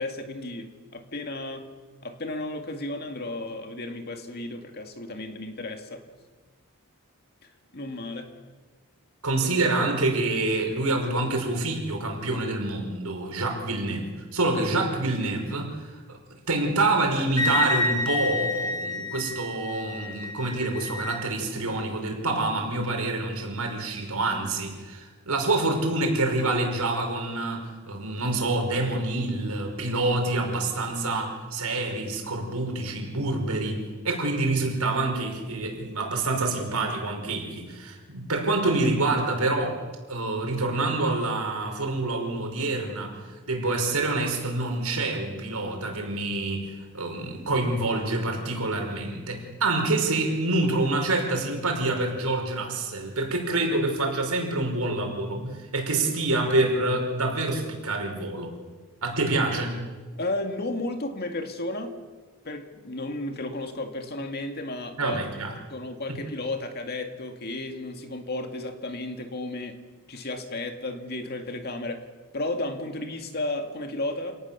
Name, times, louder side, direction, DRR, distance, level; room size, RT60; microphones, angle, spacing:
voice 1, 0.0-1.7 2.0-6.0 7.7-8.3 60.2-61.9 62.4-65.2 65.7-69.8 70.1-72.1 72.3-74.4, left 2 dB, 45° left, 5 dB, 2.2 m, -33 dB
voice 2, 9.2-16.2 16.5-39.8 40.1-58.6 59.0-59.8 65.0-65.6 66.1-66.2, right 2 dB, 90° right, 2 dB, 5.4 m, -27 dB
Wind instrument woodwind instrument, 17.4-21.2, left 2 dB, 20° left, 5.3 m, -29 dB
28.0 x 18.5 x 7.0 m, 1.4 s
head